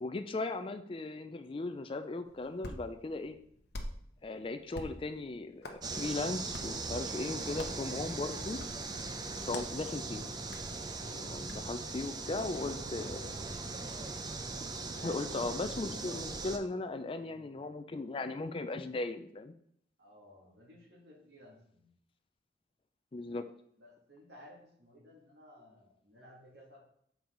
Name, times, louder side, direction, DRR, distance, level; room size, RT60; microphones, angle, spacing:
voice 1, 0.0-3.4 4.2-8.6 9.5-10.2 11.0-13.5 15.0-19.5 23.1-23.5, left 2 dB, 30° left, 9 dB, 0.4 m, -37 dB
Hands, 2.2-12.6, left 1 dB, 65° left, 0.9 m, -49 dB
sound 1, 5.8-16.6, right 3 dB, 25° right, 0.5 m, -40 dB
voice 2, 12.7-13.5 14.8-15.6 15.8-16.0 17.1-17.6 20.0-21.9 23.8-26.8, left 1 dB, 70° right, -2 dB, 2.2 m, -56 dB
7.0 x 4.7 x 3.8 m, 0.68 s
head